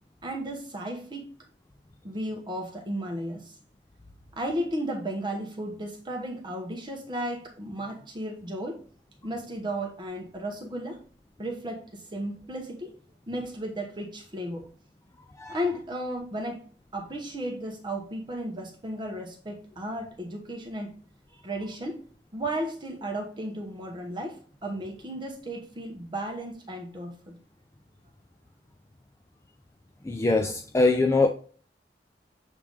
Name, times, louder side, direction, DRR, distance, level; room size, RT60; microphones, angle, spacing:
voice 1, 0.2-1.3 2.0-3.5 4.4-8.8 9.2-11.0 11.4-12.9 13.3-14.7 15.5-16.6 16.9-20.9 21.4-22.0 22.3-27.4, right 1 dB, 25° right, 1.0 m, -34 dB
voice 2, 30.0-31.3, left 3 dB, 15° left, 0.4 m, -22 dB
7.4 x 3.5 x 3.6 m
head